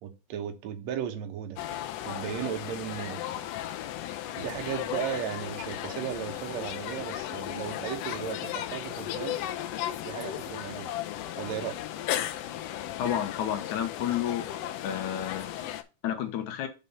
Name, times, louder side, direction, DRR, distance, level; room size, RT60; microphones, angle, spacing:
voice 1, 0.0-1.6 2.0-3.3 4.4-9.4 10.0-10.9 11.4-11.8, right 9 dB, 65° right, 2.1 m, -36 dB
sound 1, 1.6-15.8, left 12 dB, 90° left, 1.4 m, -35 dB
voice 2, 13.0-14.5 14.8-16.7, left 10 dB, 75° left, 2.4 m, -31 dB
5.5 x 5.1 x 5.4 m
omnidirectional pair, 3.6 m